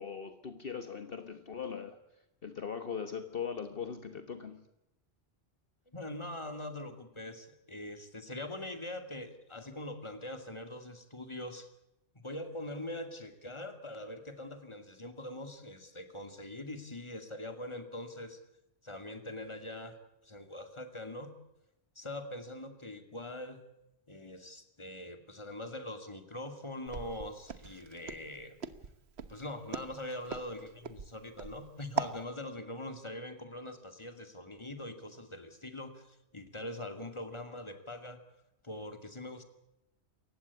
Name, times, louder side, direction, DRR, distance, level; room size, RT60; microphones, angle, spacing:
voice 1, 0.0-2.0 2.4-4.7, left 6 dB, 55° left, 9 dB, 1.5 m, -40 dB
voice 2, 5.9-11.7 12.1-18.4 18.8-20.0 20.2-21.3 22.0-23.6 24.1-28.6 29.3-38.2 38.6-39.4, left 1 dB, 25° left, 8 dB, 2.4 m, -43 dB
Walk footsteps, 26.9-32.2, right 6 dB, 70° right, 1.4 m, -40 dB
28.0 x 15.5 x 8.4 m, 0.88 s
omnidirectional pair, 1.1 m